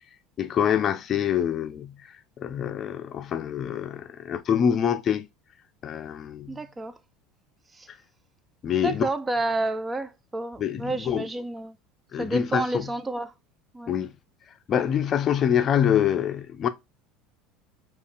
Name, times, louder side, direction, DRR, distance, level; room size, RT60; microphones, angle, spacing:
voice 1, 0.4-2.0 2.4-5.3 5.8-6.6 8.6-9.1 10.6-11.2 12.1-12.9 13.9-14.1 14.7-16.7, left 9 dB, 45° left, 0.5 m, -25 dB
voice 2, 6.5-6.9 7.7-7.9 8.8-11.8 12.2-13.3 13.7-13.9, right 2 dB, 20° right, 0.4 m, -30 dB
5.1 x 2.4 x 2.3 m
hypercardioid pair, 80°, 0 cm